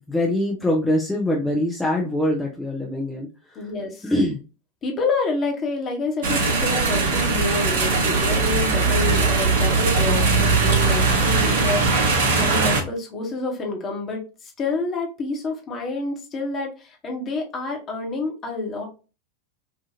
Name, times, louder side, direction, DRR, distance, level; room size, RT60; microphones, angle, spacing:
voice 1, 0.1-3.7 4.0-4.4, left 1 dB, 5° left, -2 dB, 0.6 m, -23 dB
voice 2, 3.5-4.1 4.8-18.8, left 3 dB, 25° left, 1 dB, 1.1 m, -28 dB
sound 1, 6.2-12.8, right 4 dB, 55° right, 0.8 m, -20 dB
4.1 x 2.4 x 2.7 m, 0.32 s
figure-of-eight pair, 90°, 0 cm